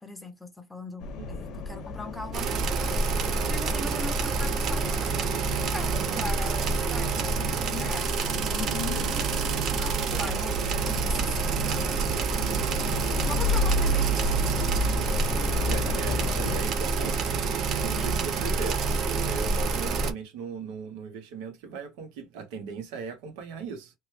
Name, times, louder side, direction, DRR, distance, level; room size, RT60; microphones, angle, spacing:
voice 1, 0.0-3.2 3.5-5.2 5.6-8.1 9.7-11.7 13.2-14.3 17.8-18.3, left 1 dB, 5° left, 0.6 m, -40 dB
sound 1, 1.0-16.6, left 1 dB, 50° left, 0.7 m, -32 dB
voice 2, 1.2-1.5 3.8-4.0 5.9-6.3 8.9-9.2 12.4-12.7 15.6-17.2 17.7-23.9, right 5 dB, 90° right, 1.0 m, -38 dB
sound 2, 2.3-20.1, right 4 dB, 45° right, 0.6 m, -28 dB
3.0 x 2.2 x 3.2 m
cardioid pair, 150°, 0 cm